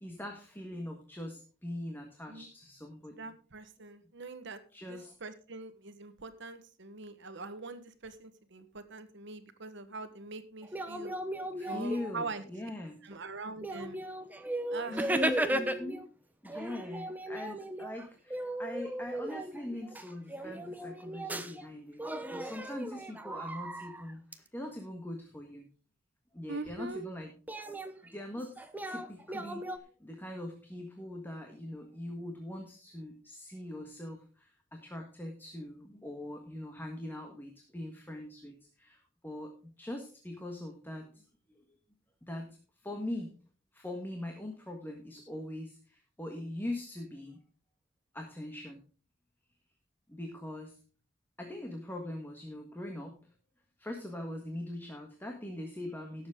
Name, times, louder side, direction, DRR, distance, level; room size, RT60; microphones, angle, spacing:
voice 1, 0.0-3.3 4.7-5.1 11.5-13.0 14.6-16.0 16.4-22.0 22.3-25.7 26.3-27.3 28.0-29.7 30.0-41.2 42.3-42.6 42.8-43.3 43.7-47.4 48.1-48.8 50.1-50.8 51.4-53.2 53.8-56.3, left 1 dB, 10° left, 3 dB, 1.5 m, -42 dB
voice 2, 3.1-11.1 11.6-12.4 13.0-14.0 14.7-15.3 26.5-27.0, right 3 dB, 65° right, 10 dB, 1.3 m, -43 dB
sound 1, 10.6-12.4 13.1-13.2 13.6-16.1 16.4-21.7 22.0-24.3 27.5-29.8, right 1 dB, 10° right, 1.0 m, -36 dB
17.5 x 7.4 x 3.7 m, 0.37 s
head